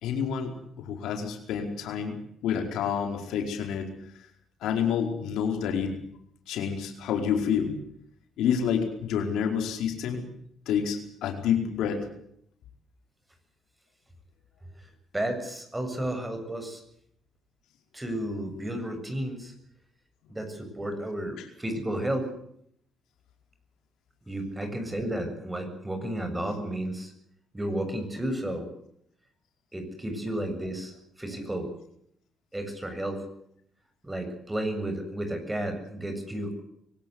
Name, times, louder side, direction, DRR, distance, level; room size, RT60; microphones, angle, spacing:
voice 1, 0.0-3.9 4.6-5.9 6.5-7.7 8.4-10.2 10.7-12.0 21.4-21.5, left 7 dB, 85° left, 4 dB, 4.8 m, -28 dB
voice 2, 15.1-16.8 17.9-19.5 20.3-22.3 24.3-27.1 27.5-28.7 29.7-31.7 32.5-33.2 34.0-36.6, right 1 dB, 10° right, 7 dB, 7.5 m, -32 dB
24.0 x 18.0 x 8.1 m, 0.69 s
cardioid pair, 90°, 0 cm